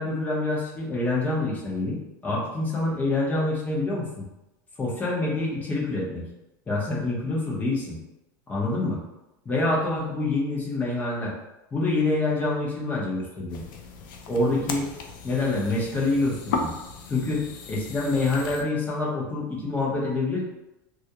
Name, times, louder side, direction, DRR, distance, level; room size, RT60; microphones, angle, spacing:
voice 1, 0.0-4.1 4.8-6.2 6.7-8.0 8.5-9.0 9.5-11.3 11.7-13.6 14.3-14.9 15.2-16.7 17.1-17.4 17.7-20.4, left 2 dB, 15° left, -4 dB, 0.6 m, -26 dB
sound 1, 13.5-18.6, left 4 dB, 80° left, 0.4 m, -36 dB
2.3 x 2.0 x 2.7 m, 0.95 s
supercardioid pair, 150°, 11 cm